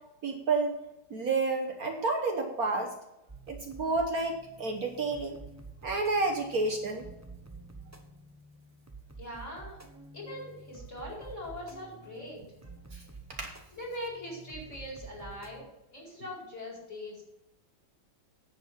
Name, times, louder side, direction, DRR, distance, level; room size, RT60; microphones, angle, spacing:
voice 1, 0.2-0.7 1.1-2.9 3.5-5.4 5.8-7.0 12.9-13.0 13.4-13.5, right 3 dB, 55° right, 3 dB, 1.5 m, -30 dB
sound 1, 3.3-15.7, right 3 dB, 10° right, 0.8 m, -49 dB
voice 2, 9.2-9.8 10.1-12.4 13.7-15.7 15.9-17.2, left 1 dB, 40° left, -3 dB, 5.1 m, -41 dB
10.0 x 8.0 x 6.0 m, 0.90 s
omnidirectional pair, 2.0 m